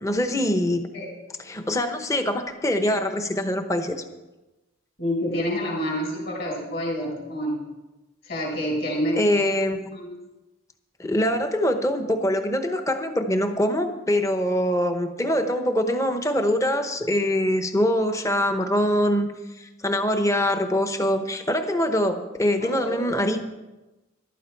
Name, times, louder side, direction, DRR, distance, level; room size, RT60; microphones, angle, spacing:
voice 1, 0.0-0.8 1.5-3.9 9.2-10.0 11.0-19.3 19.6-23.4, equal, 15° left, 7 dB, 0.9 m, -23 dB
voice 2, 5.0-7.6 8.2-9.4 9.9-10.1 22.6-23.1, equal, 50° left, -1 dB, 5.0 m, -28 dB
14.5 x 12.0 x 4.6 m, 1.1 s
head